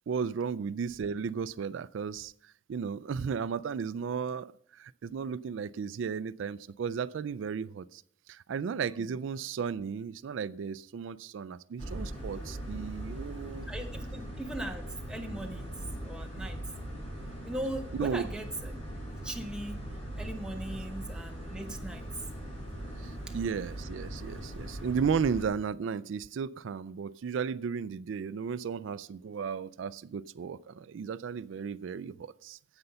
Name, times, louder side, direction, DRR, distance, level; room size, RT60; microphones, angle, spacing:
voice 1, 0.1-8.0 8.3-13.7 17.9-18.3 23.0-32.6, right 6 dB, 80° right, 0.4 m, -34 dB
sound 1, 11.8-25.4, right 1 dB, 35° left, 3.6 m, -40 dB
voice 2, 13.7-15.7 16.0-16.6 17.5-18.7 19.2-19.8 20.2-22.1 23.3-23.4, right 1 dB, 5° right, 1.0 m, -39 dB
9.7 x 8.0 x 6.6 m
head